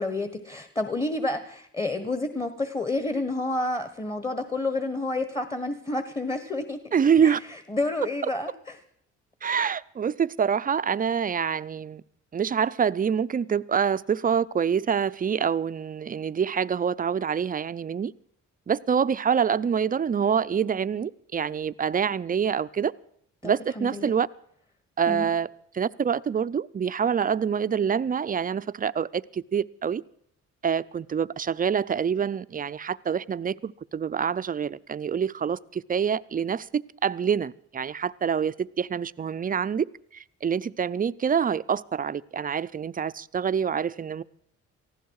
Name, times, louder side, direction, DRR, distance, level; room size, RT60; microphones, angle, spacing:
voice 1, 0.0-6.8 7.2-7.4 7.7-8.8 23.4-24.2 25.1-25.3, left 2 dB, 15° left, 1.4 m, -29 dB
voice 2, 6.9-7.4 9.4-12.0 12.3-18.1 18.7-22.9 23.4-24.3 25.0-25.5 25.7-30.0 30.6-44.2, right 7 dB, 30° right, 0.5 m, -26 dB
18.5 x 15.0 x 4.8 m
cardioid pair, 90°, 30 cm